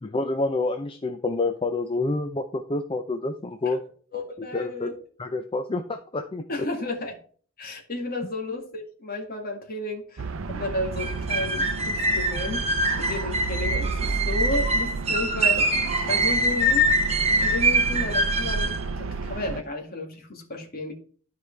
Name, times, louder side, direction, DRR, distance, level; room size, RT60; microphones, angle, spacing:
voice 1, 0.0-3.8 4.5-4.9 5.2-6.7, left 2 dB, 25° left, 0.5 m, -28 dB
voice 2, 4.1-5.0 6.5-7.2 7.6-15.7 16.1-16.9 17.3-20.9, left 2 dB, 45° left, 2.1 m, -32 dB
sound 1, 10.2-19.6, right 4 dB, 70° right, 0.6 m, -31 dB
sound 2, 11.0-18.8, right 1 dB, 30° right, 1.1 m, -24 dB
12.5 x 4.9 x 3.3 m
head